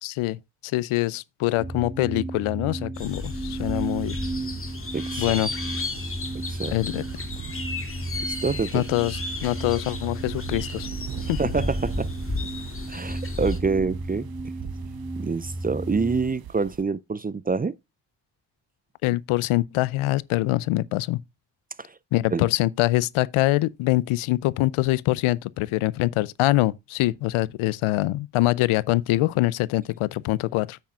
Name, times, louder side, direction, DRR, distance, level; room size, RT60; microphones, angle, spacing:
voice 1, 0.0-4.2 5.2-5.5 6.7-7.0 8.7-10.9 11.2-11.4 19.0-21.2 22.1-30.8, left 18 dB, 85° left, 0.6 m, -24 dB
sound 1, 1.6-16.3, right 2 dB, ahead, 4.2 m, -34 dB
sound 2, 2.9-13.6, left 3 dB, 25° left, 2.3 m, -34 dB
sound 3, 3.1-16.8, right 10 dB, 50° right, 0.8 m, -41 dB
voice 2, 4.9-5.3 6.3-6.7 8.3-8.8 11.4-12.1 12.9-14.3 15.2-17.8 21.8-21.9 22.3-22.5, right 4 dB, 20° right, 0.4 m, -26 dB
9.3 x 8.6 x 2.4 m
supercardioid pair, 60°, 48 cm